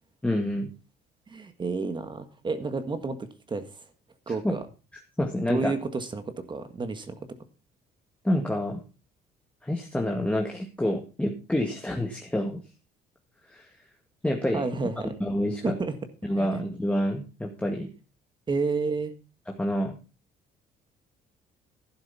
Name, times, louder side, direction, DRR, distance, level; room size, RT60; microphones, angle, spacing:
voice 1, 0.2-0.7 4.3-4.6 5.2-5.8 8.2-8.8 9.6-12.6 13.5-13.7 14.2-14.6 15.2-15.8 16.2-17.9 19.6-20.0, left 1 dB, 5° left, 1 dB, 1.9 m, -28 dB
voice 2, 1.3-3.2 3.5-3.8 4.3-4.6 5.5-6.2 6.5-7.1 14.5-15.1 15.6-15.9 16.4-16.5 18.5-19.1, right 4 dB, 25° right, 9 dB, 1.7 m, -30 dB
12.0 x 10.5 x 4.2 m, 0.32 s
cardioid pair, 110°, 17 cm